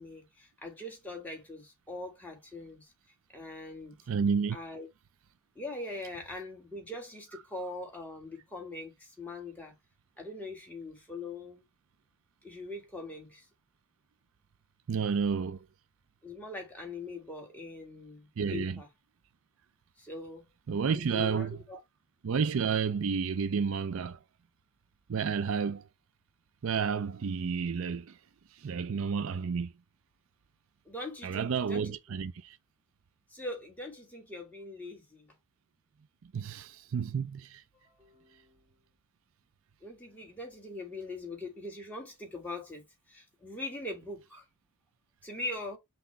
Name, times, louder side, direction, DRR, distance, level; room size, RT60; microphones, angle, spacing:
voice 1, 0.0-2.9 3.3-4.0 4.5-4.9 5.6-9.7 10.2-11.6 12.4-13.5 16.2-18.9 20.0-20.5 20.9-21.8 30.9-32.0 33.3-35.3 37.7-38.6 39.8-44.4 45.2-45.8, left 2 dB, 5° left, 1.9 m, -42 dB
voice 2, 4.1-4.6 14.9-15.6 18.4-18.8 20.7-21.6 22.2-24.2 25.1-25.8 26.6-28.2 28.5-29.7 31.2-32.6 36.2-37.6, right 6 dB, 60° right, 0.4 m, -31 dB
5.9 x 2.7 x 3.4 m
head